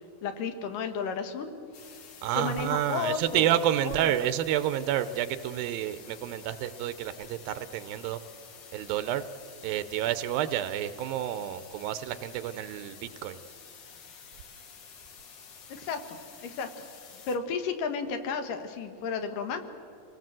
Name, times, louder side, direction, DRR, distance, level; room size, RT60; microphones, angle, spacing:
voice 1, 0.2-1.5 2.3-3.5 3.8-3.9 15.7-16.2 16.4-16.7 17.3-19.6, left 5 dB, 70° left, 7 dB, 2.9 m, -32 dB
sound 1, 1.7-17.4, left 6 dB, 55° left, 2.5 m, -50 dB
voice 2, 2.2-8.2 8.7-9.2 9.6-13.4, right 11 dB, 85° right, 12 dB, 2.5 m, -29 dB
26.5 x 18.0 x 7.6 m, 2.5 s
omnidirectional pair, 4.1 m